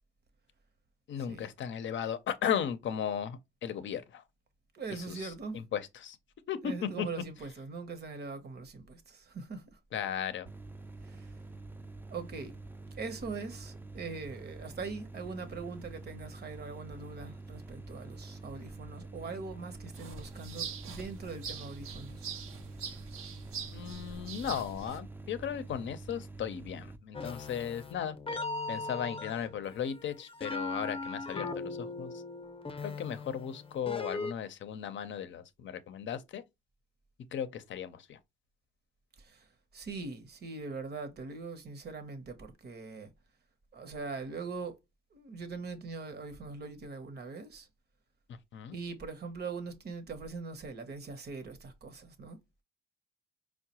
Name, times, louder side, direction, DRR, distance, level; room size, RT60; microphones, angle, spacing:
voice 1, 1.1-4.2 5.1-6.2 6.5-7.1 9.9-10.5 23.7-28.2 28.7-32.2 32.8-36.4 37.3-38.2 48.3-48.8, left 8 dB, 65° left, 0.6 m, -36 dB
voice 2, 4.7-5.6 6.6-9.8 11.0-11.3 12.1-12.6 13.0-22.2 39.2-43.1 43.7-44.8 45.1-47.7 48.7-52.4, right 4 dB, 50° right, 0.8 m, -42 dB
sound 1, 10.4-27.0, right 2 dB, 10° right, 0.4 m, -47 dB
sound 2, 20.0-25.0, right 7 dB, 90° right, 0.7 m, -43 dB
sound 3, 27.1-34.3, left 3 dB, 25° left, 0.7 m, -39 dB
4.5 x 2.1 x 2.8 m
cardioid pair, 70°, 21 cm